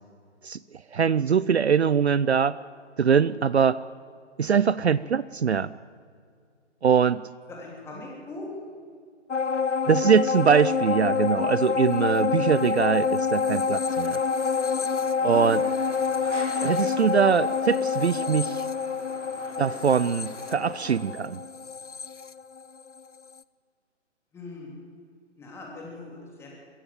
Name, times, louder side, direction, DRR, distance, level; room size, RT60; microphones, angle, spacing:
voice 1, 0.9-2.6 3.0-3.8 4.4-5.7 6.8-7.2 9.9-14.2 15.2-15.6 16.6-18.7 19.6-21.4, right 7 dB, 65° right, 18 dB, 0.5 m, -22 dB
voice 2, 7.5-8.5 15.2-15.5 24.3-24.7 25.4-26.5, left 3 dB, 5° left, -2 dB, 3.0 m, -40 dB
sound 1, 9.3-23.0 23.4-23.5, left 5 dB, 75° left, 0.8 m, -27 dB
sound 2, 13.8-21.0, right 1 dB, 80° right, 4.7 m, -45 dB
22.5 x 14.5 x 9.1 m, 2.1 s
figure-of-eight pair, 140°, 36 cm